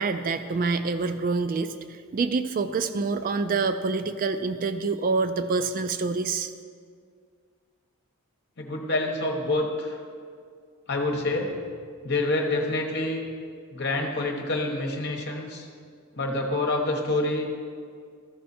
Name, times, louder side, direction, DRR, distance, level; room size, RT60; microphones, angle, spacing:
voice 1, 0.0-6.5, right 4 dB, 40° right, 10 dB, 0.3 m, -26 dB
voice 2, 8.6-10.0 10.9-11.6 12.0-13.2 13.7-15.7 16.1-17.5, left 2 dB, 50° left, 1 dB, 1.2 m, -27 dB
14.0 x 5.5 x 4.3 m, 2.1 s
head